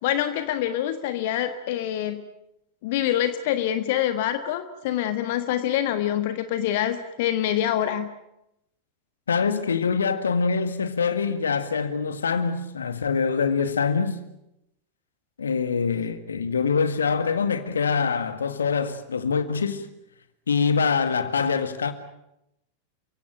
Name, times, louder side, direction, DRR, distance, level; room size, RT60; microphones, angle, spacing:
voice 1, 0.0-2.2 2.8-8.1, left 11 dB, 50° left, 1.5 m, -25 dB
voice 2, 9.3-14.2 15.4-19.9 20.5-21.9, left 5 dB, 70° left, 1.9 m, -24 dB
29.5 x 16.5 x 9.0 m
figure-of-eight pair, 90°, 0 cm